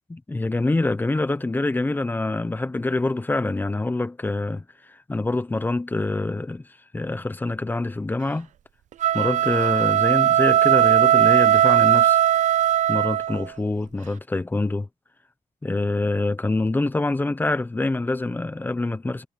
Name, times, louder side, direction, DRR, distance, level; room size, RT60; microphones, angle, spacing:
voice 1, 0.1-6.6 6.9-8.5 9.1-12.2 12.9-14.9 15.6-19.2, left 2 dB, 15° left, 0.8 m, -25 dB
sound 1, 8.9-13.5, right 11 dB, 75° right, 0.6 m, -18 dB
wide cardioid pair, 160°, 13 cm